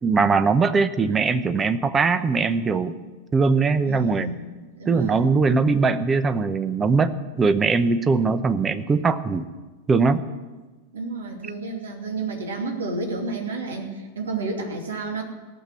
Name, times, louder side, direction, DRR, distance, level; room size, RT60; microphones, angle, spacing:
voice 1, 0.0-3.0 3.3-4.3 4.9-9.5 9.9-10.2, right 4 dB, 20° right, 12 dB, 0.8 m, -21 dB
voice 2, 3.9-4.5 4.8-5.4 10.9-15.2, right 3 dB, 65° right, 2 dB, 2.7 m, -31 dB
17.0 x 7.5 x 9.6 m, 1.3 s
figure-of-eight pair, 90°, 0 cm